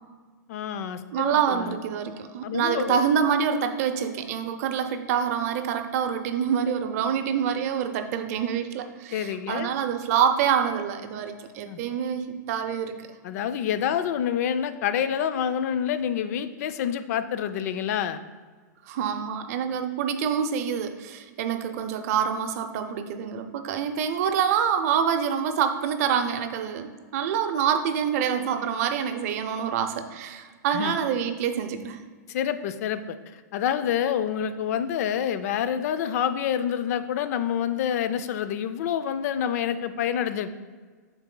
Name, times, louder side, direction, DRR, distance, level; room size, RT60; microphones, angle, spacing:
voice 1, 0.5-1.7 2.4-3.0 9.1-9.7 11.7-11.8 13.2-18.2 30.7-30.9 32.3-33.2 33.5-40.5, left 9 dB, 60° left, 12 dB, 0.4 m, -27 dB
voice 2, 1.1-13.0 18.9-32.0, right 8 dB, 55° right, 7 dB, 0.6 m, -26 dB
10.5 x 4.0 x 2.2 m, 1.5 s
hypercardioid pair, 135°, 10 cm